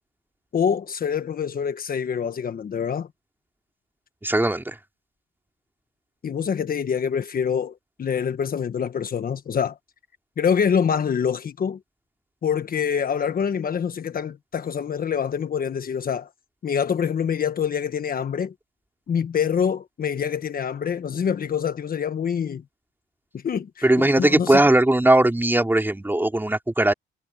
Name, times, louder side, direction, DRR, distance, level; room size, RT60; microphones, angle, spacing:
voice 1, 0.5-3.1 6.2-9.8 10.4-11.8 12.4-16.3 16.6-18.5 19.1-22.6 23.3-24.6, left 7 dB, 50° left, 1.3 m, -25 dB
voice 2, 4.2-4.7 23.8-26.9, right 1 dB, 10° right, 3.6 m, -19 dB
cardioid pair, 90°, 20 cm